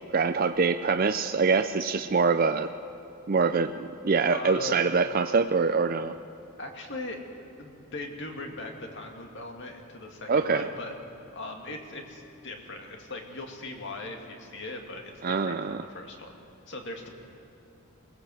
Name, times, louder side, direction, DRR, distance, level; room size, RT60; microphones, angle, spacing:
voice 1, 0.0-2.7 3.3-6.2 10.3-10.6 15.2-15.8, right 4 dB, 40° right, 8 dB, 0.5 m, -24 dB
voice 2, 4.3-4.8 6.6-7.2 7.6-16.4 16.7-17.1, left 2 dB, 55° left, 2 dB, 2.4 m, -39 dB
22.0 x 19.0 x 7.9 m, 2.7 s
head